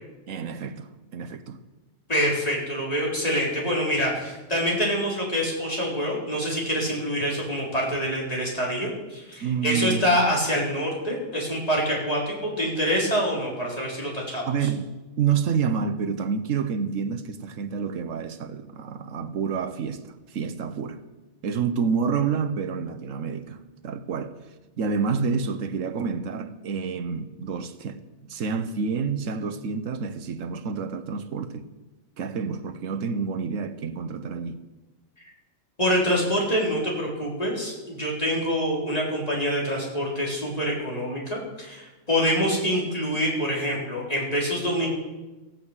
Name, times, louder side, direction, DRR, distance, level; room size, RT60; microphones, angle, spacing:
voice 1, 0.3-1.6 9.4-10.2 14.5-21.0 21.4-24.4 24.8-31.6 32.2-34.6, right 6 dB, 85° right, 1.3 m, -28 dB
voice 2, 2.1-14.4 35.8-44.9, equal, 30° left, 4.2 m, -26 dB
15.5 x 9.1 x 8.1 m
omnidirectional pair, 1.3 m